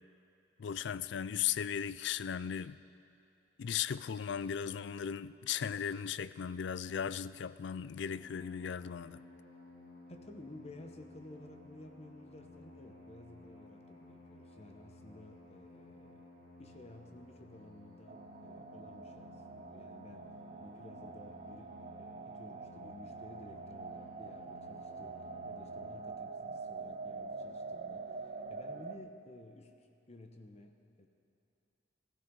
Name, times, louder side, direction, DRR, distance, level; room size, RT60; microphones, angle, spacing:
voice 1, 0.6-2.8 3.6-9.2, left 8 dB, 65° left, 0.4 m, -37 dB
sound 1, 8.1-26.0, left 2 dB, 90° left, 2.8 m, -56 dB
voice 2, 10.1-16.3 16.6-20.3 20.6-31.1, left 1 dB, 35° left, 0.9 m, -54 dB
sound 2, 18.1-29.0, right 4 dB, 45° right, 0.6 m, -45 dB
15.5 x 14.0 x 5.5 m
head